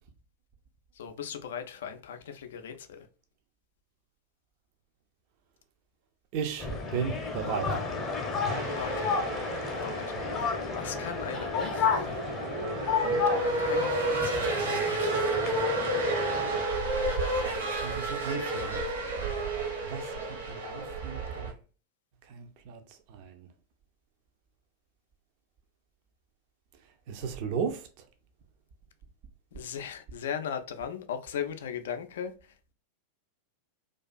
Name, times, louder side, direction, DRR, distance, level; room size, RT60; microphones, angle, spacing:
voice 1, 1.0-3.1 8.8-9.2 9.7-10.0 10.7-12.2 13.0-14.7 29.5-32.3, left 8 dB, 60° left, 0.3 m, -38 dB
voice 2, 6.3-7.8 17.3-18.8 19.9-21.6 22.3-22.8 23.1-23.5 27.1-27.9, right 7 dB, 45° right, 0.4 m, -36 dB
sound 1, 6.6-16.6, left 5 dB, 25° left, 0.6 m, -32 dB
sound 2, 8.5-21.5, right 2 dB, 65° right, 0.8 m, -31 dB
2.4 x 2.3 x 2.2 m
figure-of-eight pair, 90°, 0 cm